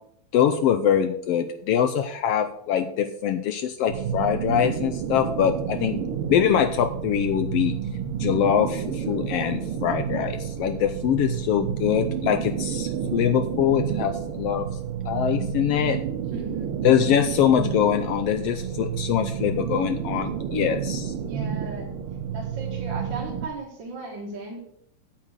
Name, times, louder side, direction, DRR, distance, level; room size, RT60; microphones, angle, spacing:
voice 1, 0.3-6.0 6.3-7.7 8.2-14.7 15.0-16.0 16.8-21.1, left 9 dB, 85° left, 9 dB, 1.4 m, -23 dB
sound 1, 3.9-23.5, right 8 dB, 70° right, 1.3 m, -30 dB
voice 2, 5.7-6.2 16.3-16.8 21.2-21.9 22.3-24.6, right 2 dB, 45° right, -3 dB, 2.1 m, -37 dB
8.9 x 7.4 x 6.5 m, 0.71 s
omnidirectional pair, 3.4 m